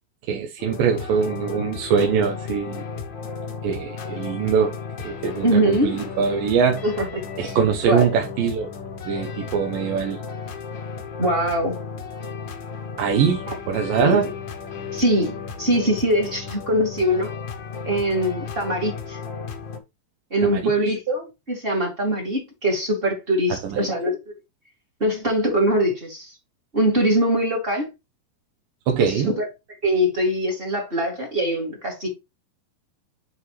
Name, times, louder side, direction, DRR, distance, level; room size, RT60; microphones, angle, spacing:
voice 1, 0.3-2.9 3.6-4.8 5.0-6.8 7.4-8.7 9.1-10.2 13.0-14.3 20.4-20.7 23.6-23.9 28.9-29.3, right 6 dB, 80° right, 2.7 m, -22 dB
sound 1, 0.6-19.8, left 5 dB, 60° left, 1.2 m, -34 dB
voice 2, 5.4-5.9 6.8-7.6 7.8-8.1 11.2-11.8 13.5-13.6 14.0-14.2 14.9-17.3 17.8-19.2 20.3-24.2 25.0-26.3 26.7-27.9 29.0-29.5 29.8-32.1, right 1 dB, 20° right, 2.3 m, -22 dB
8.0 x 5.5 x 3.1 m
omnidirectional pair, 4.0 m